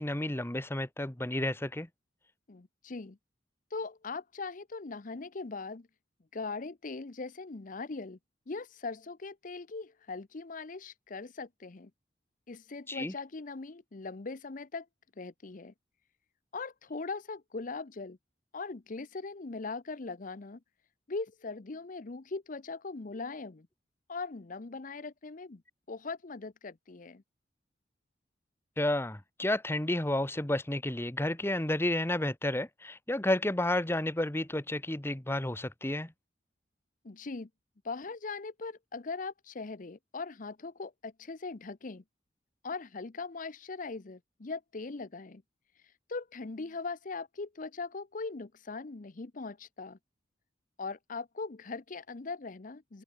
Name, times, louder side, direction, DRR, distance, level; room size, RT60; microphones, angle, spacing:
voice 1, 0.0-1.9 12.9-13.1 28.8-36.1, left 1 dB, 15° left, 1.2 m, -31 dB
voice 2, 2.5-3.2 3.7-5.9 6.3-8.2 8.5-11.9 12.5-14.9 15.2-15.7 16.5-18.2 18.5-20.6 21.1-23.7 24.1-25.6 25.9-27.2 37.0-37.5 37.8-42.0 42.6-45.4 46.1-50.0 50.8-53.0, left 3 dB, 45° left, 0.7 m, -40 dB
head